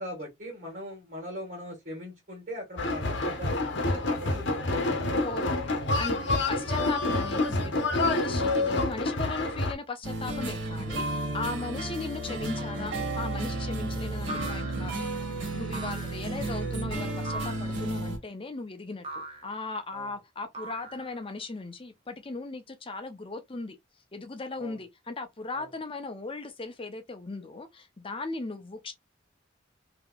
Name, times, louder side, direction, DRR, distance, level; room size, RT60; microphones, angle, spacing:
voice 1, 0.0-3.6 3.9-5.3 6.4-6.5 19.9-20.1 24.6-24.8 25.5-25.7, equal, 50° right, 1.6 m, -40 dB
sound 1, 2.8-9.7, left 2 dB, 70° left, 0.9 m, -27 dB
voice 2, 5.2-15.0 15.5-23.8 24.1-28.9, left 3 dB, 30° left, 0.6 m, -37 dB
sound 2, 10.0-18.2, right 2 dB, 75° right, 1.7 m, -33 dB
sound 3, 12.6-13.0 14.3-15.1 15.7-16.3 17.2-17.8 19.0-19.6 20.5-21.3, right 2 dB, 30° right, 0.7 m, -40 dB
3.7 x 2.9 x 2.3 m
head